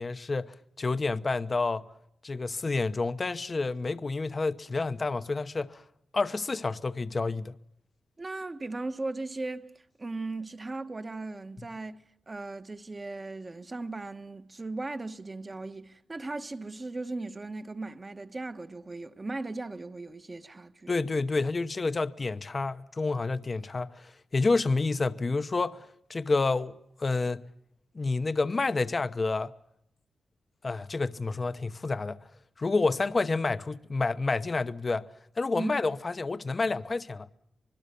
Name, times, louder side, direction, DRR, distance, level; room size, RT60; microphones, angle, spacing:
voice 1, 0.0-1.8 2.2-5.8 6.1-7.5 20.9-26.7 27.0-27.4 27.9-29.5 30.6-32.2 32.6-35.1 35.4-37.3, left 3 dB, 35° left, 0.9 m, -29 dB
voice 2, 8.2-9.7 10.0-20.9 35.5-35.7, right 2 dB, 30° right, 1.2 m, -37 dB
25.5 x 21.0 x 6.8 m
cardioid pair, 95°, 0 cm